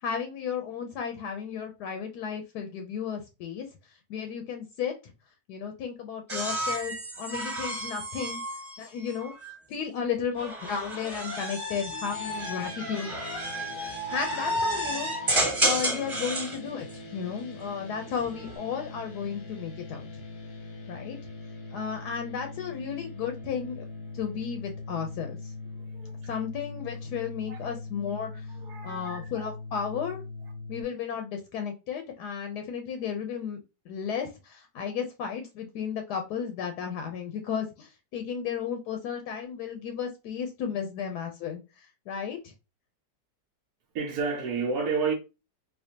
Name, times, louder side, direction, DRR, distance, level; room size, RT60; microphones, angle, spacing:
voice 1, 0.0-3.7 4.1-5.1 5.5-8.4 8.8-9.3 9.7-13.2 14.1-15.1 15.6-20.2 20.9-21.2 21.7-23.9 24.1-25.5 26.3-28.5 28.8-30.2 30.7-42.5, left 7 dB, 80° left, 1.1 m, -34 dB
sound 1, 6.3-9.6 10.4-16.6 18.0-18.6, right 1 dB, 20° right, 1.3 m, -31 dB
sound 2, 12.1-30.8, left 2 dB, 45° left, 0.9 m, -42 dB
voice 2, 25.7-26.3 27.5-27.7 28.5-29.5 43.9-45.1, right 5 dB, 75° right, 1.1 m, -31 dB
4.3 x 2.4 x 2.7 m
omnidirectional pair, 1.8 m